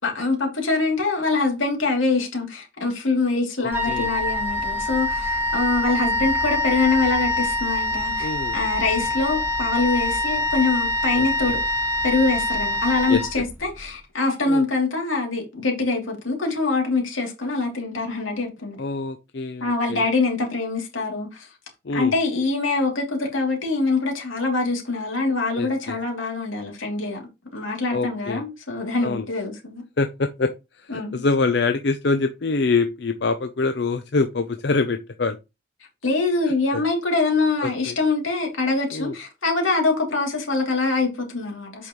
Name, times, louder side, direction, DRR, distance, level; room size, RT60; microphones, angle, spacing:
voice 1, 0.0-11.6 12.0-18.8 19.6-21.5 21.9-27.2 27.5-29.8 30.9-31.2 36.0-41.9, left 3 dB, 85° left, 2.9 m, -24 dB
voice 2, 3.6-4.1 8.2-8.6 11.1-11.6 13.1-13.2 14.5-14.6 18.8-20.1 21.8-22.1 25.5-26.0 27.9-28.4 29.0-29.3 30.0-35.4 36.7-36.8 37.6-38.0 38.9-39.2, left 3 dB, 55° left, 0.5 m, -25 dB
Wind instrument woodwind instrument, 3.7-13.8, left 1 dB, 10° right, 1.3 m, -25 dB
8.2 x 5.4 x 3.1 m
head